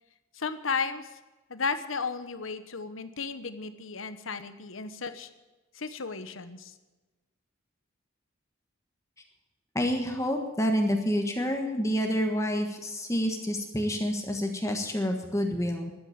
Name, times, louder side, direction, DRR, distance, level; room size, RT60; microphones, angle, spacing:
voice 1, 0.3-1.1 1.5-5.3 5.7-6.7, left 5 dB, 70° left, 11 dB, 1.2 m, -34 dB
voice 2, 9.7-15.9, equal, 15° left, 3 dB, 1.4 m, -28 dB
12.5 x 10.0 x 8.7 m, 1.2 s
head